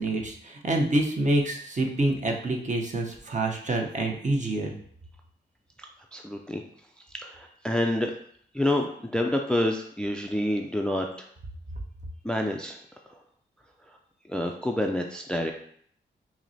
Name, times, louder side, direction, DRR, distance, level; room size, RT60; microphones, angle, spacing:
voice 1, 0.0-4.7, right 2 dB, 40° right, 1 dB, 0.8 m, -27 dB
voice 2, 6.1-6.6 7.2-8.1 8.5-11.3 12.2-12.8 14.3-15.5, left 1 dB, 5° left, 3 dB, 0.3 m, -28 dB
5.7 x 2.1 x 2.7 m, 0.64 s
cardioid pair, 50°, 20 cm